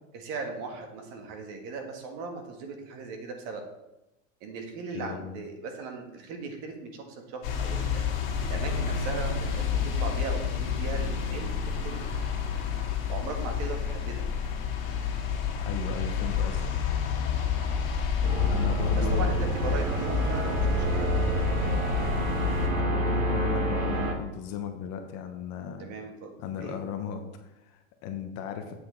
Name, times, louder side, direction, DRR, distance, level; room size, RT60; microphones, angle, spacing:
voice 1, 0.1-3.6 4.4-8.1 8.4-9.7 10.0-12.0 13.1-14.3 19.0-21.2 25.8-26.8, right 4 dB, 40° right, 4 dB, 1.7 m, -38 dB
voice 2, 4.9-5.4 15.6-16.7 18.5-19.3 22.0-25.9 26.4-28.7, left 7 dB, 35° left, 5 dB, 0.9 m, -36 dB
sound 1, 7.4-22.7, left 7 dB, 50° left, 2.5 m, -29 dB
sound 2, 18.2-24.1, right 1 dB, 70° right, 1.8 m, -28 dB
7.9 x 6.4 x 4.5 m, 0.95 s
supercardioid pair, 145°, 43 cm